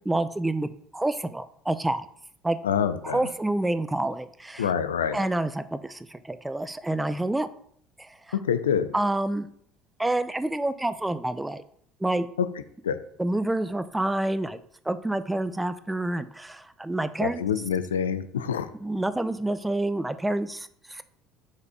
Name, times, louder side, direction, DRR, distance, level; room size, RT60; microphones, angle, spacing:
voice 1, 0.0-2.1 2.4-2.6 3.0-4.7 5.1-7.5 8.0-8.4 8.9-9.5 10.0-11.6 12.0-12.3 13.2-14.6 14.8-17.4 18.7-21.0, right 1 dB, 10° right, 12 dB, 0.5 m, -28 dB
voice 2, 2.6-3.2 4.6-5.2 8.3-8.9 12.4-12.5 12.8-13.0 17.2-18.7, left 8 dB, 90° left, 12 dB, 0.3 m, -26 dB
5.2 x 4.1 x 4.8 m, 0.64 s
hypercardioid pair, 65°, 0 cm